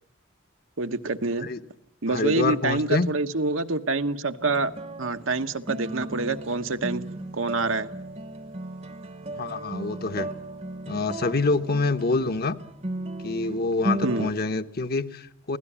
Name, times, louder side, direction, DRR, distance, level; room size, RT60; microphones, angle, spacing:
voice 1, 0.8-1.5 2.0-4.7 5.0-7.0 7.3-7.9 14.0-14.3, right 3 dB, 85° right, 8 dB, 1.2 m, -26 dB
voice 2, 2.1-3.1 9.4-10.3 10.9-12.6 13.2-15.6, left 3 dB, 50° left, 9 dB, 1.1 m, -26 dB
sound 1, 4.4-14.3, right 1 dB, 30° right, 0.9 m, -35 dB
24.0 x 17.0 x 10.0 m, 0.73 s
head